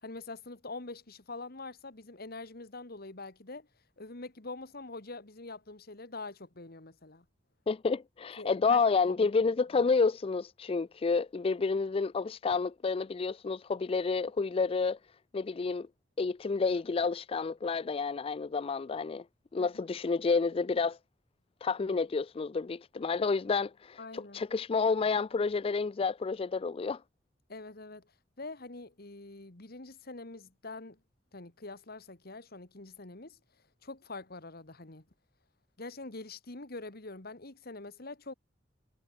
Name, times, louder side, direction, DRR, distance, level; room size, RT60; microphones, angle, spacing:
voice 1, 0.0-3.7 4.0-7.3 8.4-9.3 19.6-19.8 24.0-24.5 27.5-28.1 28.4-31.0 31.3-33.4 33.8-35.0 35.8-38.3, left 3 dB, 55° left, 2.1 m, -44 dB
voice 2, 7.7-15.0 15.3-15.9 16.2-19.2 19.5-21.0 21.6-27.0, left 4 dB, 30° left, 0.4 m, -29 dB
head